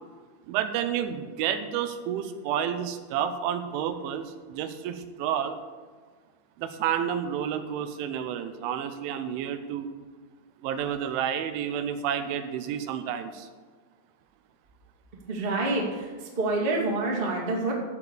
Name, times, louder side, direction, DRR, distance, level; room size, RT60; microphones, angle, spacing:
voice 1, 0.5-5.6 6.6-9.9 10.6-13.5, right 9 dB, 85° right, 9 dB, 3.3 m, -30 dB
voice 2, 15.3-17.7, right 2 dB, 35° right, -2 dB, 0.9 m, -27 dB
14.5 x 4.9 x 7.2 m, 1.5 s
omnidirectional pair, 5.4 m